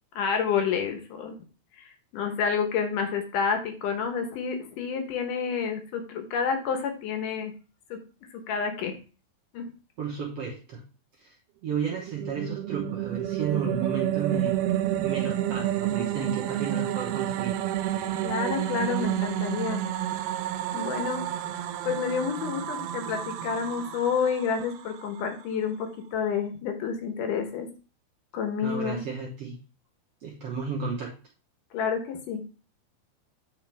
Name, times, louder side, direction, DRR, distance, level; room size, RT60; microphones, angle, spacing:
voice 1, 0.2-1.4 1.8-7.5 7.9-8.0 8.3-9.0 9.5-9.7 18.2-19.9 20.7-21.2 21.9-27.7 28.3-29.0 31.7-32.4, left 6 dB, 65° left, 5 dB, 2.4 m, -29 dB
voice 2, 10.0-10.8 11.2-11.4 11.6-14.6 15.0-17.5 28.6-29.6 30.2-31.1, right 5 dB, 70° right, -3 dB, 1.4 m, -33 dB
sound 1, 11.9-25.2, right 12 dB, 90° right, 2.6 m, -30 dB
8.8 x 4.7 x 3.4 m, 0.35 s
omnidirectional pair, 4.5 m